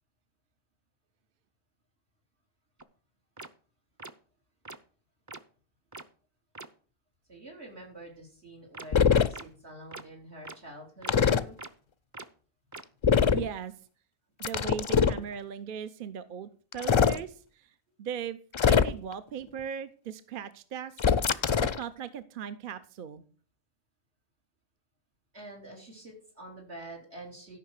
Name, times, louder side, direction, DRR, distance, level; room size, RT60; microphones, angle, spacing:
sound 1, 2.8-2.9 3.4-3.5 4.0-4.1 4.6-4.8 5.3-5.4 5.9-6.0 6.5-6.7 8.7-8.8 9.3-9.4 9.9-10.0 10.4-10.5 11.0-11.1 11.6-11.7 12.1-12.2 12.7-12.8, right 3 dB, 20° right, 0.5 m, -42 dB
voice 1, 7.3-11.6 16.1-16.3 25.3-27.6, right 1 dB, 80° right, -1 dB, 3.9 m, -47 dB
sound 2, 8.9-9.3 11.1-11.4 13.0-13.5 14.4-15.2 16.7-17.2 18.5-19.1 21.0-21.8, left 6 dB, 45° left, 0.4 m, -23 dB
voice 2, 13.3-13.7 14.4-21.3 21.6-23.2, right 8 dB, 60° right, 12 dB, 0.8 m, -39 dB
13.0 x 5.6 x 6.5 m, 0.42 s
omnidirectional pair, 1.1 m